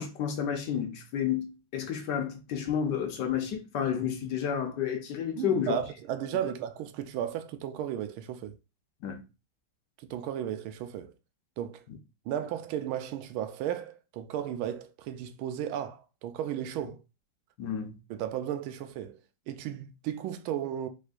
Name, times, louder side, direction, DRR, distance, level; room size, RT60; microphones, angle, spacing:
voice 1, 0.0-5.8 9.0-9.2 17.6-17.9, left 8 dB, 65° left, 1.3 m, -31 dB
voice 2, 5.3-8.6 10.0-11.1 11.6-11.8 12.3-17.0 18.1-19.2 19.5-20.9, right 10 dB, 85° right, 1.4 m, -34 dB
5.1 x 3.6 x 2.5 m
omnidirectional pair, 2.2 m